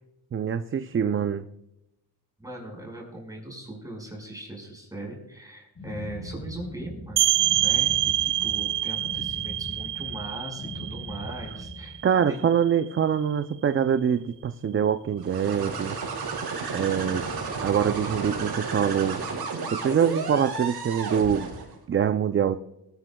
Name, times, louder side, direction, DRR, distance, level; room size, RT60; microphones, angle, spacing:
voice 1, 0.3-1.4 12.0-16.0 16.7-17.2 17.6-19.2 19.7-21.5 21.9-22.6, right 8 dB, 30° right, 10 dB, 0.5 m, -24 dB
voice 2, 2.4-7.3 7.5-12.0 12.3-12.4, right 1 dB, 10° right, -1 dB, 5.1 m, -39 dB
sound 1, 5.8-12.1, equal, 35° left, 4.4 m, -40 dB
sound 2, 7.2-12.6, right 13 dB, 85° right, 0.7 m, -26 dB
sound 3, 15.2-21.7, right 4 dB, 65° right, 5.1 m, -32 dB
20.0 x 13.5 x 2.3 m, 0.89 s
cardioid pair, 110°, 42 cm